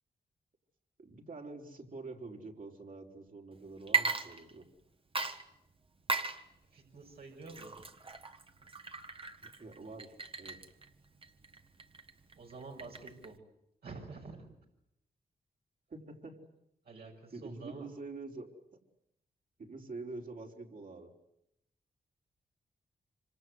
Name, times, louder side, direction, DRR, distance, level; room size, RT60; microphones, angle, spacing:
voice 1, 1.0-4.7 9.4-10.6 15.9-16.5 17.3-18.5 19.6-21.1, right 3 dB, 55° right, 0 dB, 4.7 m, -46 dB
Water / Liquid, 3.8-4.8 5.1-13.4, right 4 dB, 35° right, 1.8 m, -38 dB
voice 2, 6.7-7.8 12.4-13.4 13.8-14.5 16.8-17.9, right 3 dB, 70° right, -1 dB, 6.2 m, -48 dB
26.0 x 25.5 x 8.1 m, 0.80 s
cardioid pair, 70°, 17 cm